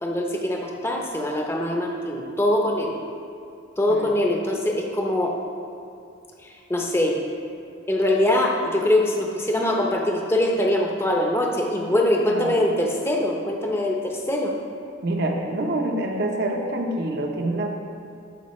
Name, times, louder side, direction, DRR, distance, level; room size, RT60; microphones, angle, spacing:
voice 1, 0.0-3.0 3.8-5.4 6.4-7.2 7.9-14.5, left 1 dB, 10° left, 0 dB, 0.7 m, -23 dB
voice 2, 12.3-12.6 15.0-17.7, right 1 dB, 55° right, 2 dB, 0.8 m, -26 dB
13.5 x 5.2 x 3.2 m, 2.6 s
head